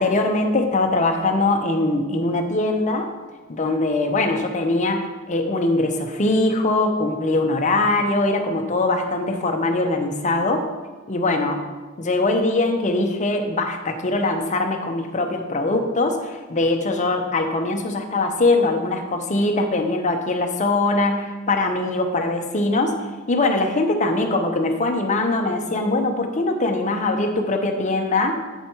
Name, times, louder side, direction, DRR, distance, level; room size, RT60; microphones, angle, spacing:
voice 1, 0.0-3.1 3.5-10.7 11.1-11.6 12.0-22.9 23.3-28.4, left 2 dB, 35° left, 4 dB, 0.8 m, -22 dB
8.1 x 5.0 x 4.4 m, 1.3 s
head